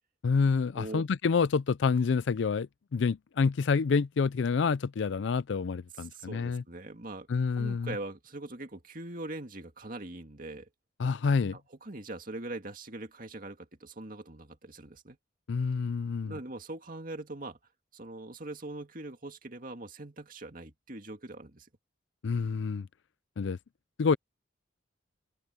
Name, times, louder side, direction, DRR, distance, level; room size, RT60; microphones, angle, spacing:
voice 1, 0.2-6.6 7.3-7.9 11.0-11.6 15.5-16.3 22.2-22.9 23.4-23.6 24.0-24.2, left 5 dB, 70° left, 0.4 m, -28 dB
voice 2, 6.0-7.3 7.6-10.7 11.5-15.2 16.2-17.6 17.9-21.7, right 2 dB, 45° right, 2.2 m, -42 dB
open air
head